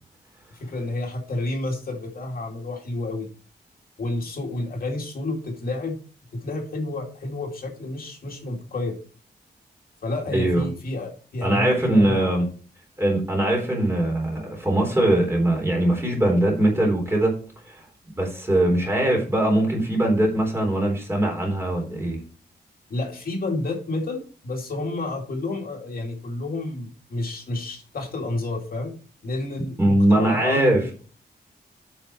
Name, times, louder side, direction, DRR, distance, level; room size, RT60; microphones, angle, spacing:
voice 1, 0.5-3.3 4.0-6.0 6.3-9.0 10.0-12.4 22.9-28.9 29.2-30.9, left 2 dB, 60° left, 1 dB, 2.5 m, -30 dB
voice 2, 10.3-10.7 11.4-12.4 13.0-17.3 17.7-17.8 18.2-22.2 29.8-30.9, right 1 dB, 15° right, 0 dB, 3.7 m, -21 dB
8.9 x 6.6 x 4.4 m, 0.38 s
wide cardioid pair, 175°, 17 cm